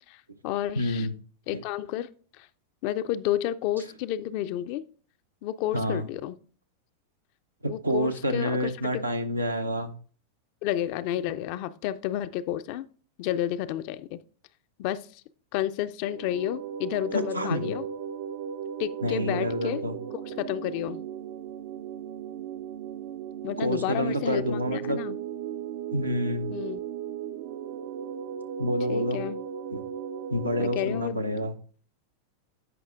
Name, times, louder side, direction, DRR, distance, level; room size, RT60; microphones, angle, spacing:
voice 1, 0.1-1.1 1.5-2.1 2.4-2.5 2.8-4.8 5.4-6.3 7.7-9.1 10.6-12.9 13.2-14.2 14.8-15.2 15.5-17.8 18.8-19.8 20.1-21.0 23.4-25.2 26.5-26.8 28.9-29.4 30.6-31.2, left 12 dB, 45° left, 13 dB, 0.4 m, -31 dB
voice 2, 0.8-1.1 1.5-1.6 5.7-6.1 7.6-9.9 17.1-17.7 19.0-20.0 23.6-25.0 25.9-26.5 28.6-29.2 29.7-29.8 30.3-31.5, equal, 85° right, 6 dB, 0.7 m, -28 dB
sound 1, 16.0-31.0, right 9 dB, 50° right, 0.4 m, -36 dB
15.5 x 5.4 x 2.4 m, 0.42 s
figure-of-eight pair, 90°, 0 cm